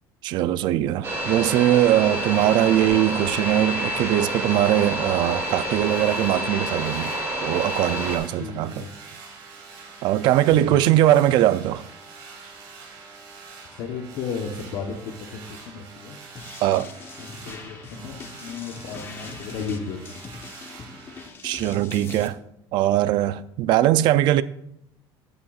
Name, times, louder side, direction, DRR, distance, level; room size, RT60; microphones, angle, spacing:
voice 1, 0.2-7.1 7.4-8.8 10.0-11.8 16.6-16.9 21.4-22.4 22.7-24.4, right 13 dB, 50° right, 0.4 m, -21 dB
sound 1, 1.0-8.2, equal, 30° right, 2.1 m, -28 dB
sound 2, 2.0-21.3, right 4 dB, 90° right, 2.9 m, -46 dB
voice 2, 8.4-8.9 10.5-10.8 13.7-16.2 17.2-20.2, left 5 dB, 60° left, 1.0 m, -34 dB
sound 3, 16.4-22.3, left 5 dB, 25° left, 0.8 m, -42 dB
13.5 x 8.7 x 2.4 m
cardioid pair, 175°, 10 cm